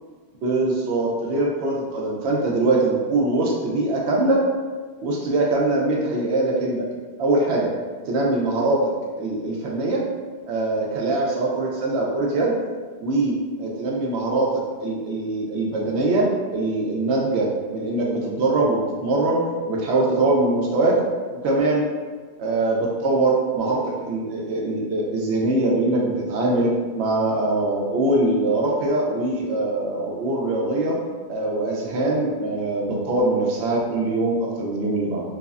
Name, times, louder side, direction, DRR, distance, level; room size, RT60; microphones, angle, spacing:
voice 1, 0.4-4.4 5.0-6.9 7.2-7.7 8.1-10.0 10.5-12.5 13.0-21.0 21.3-21.9 22.4-31.0 31.3-35.2, right 2 dB, 85° right, -2 dB, 0.9 m, -22 dB
3.2 x 2.0 x 2.4 m, 1.5 s
omnidirectional pair, 1.1 m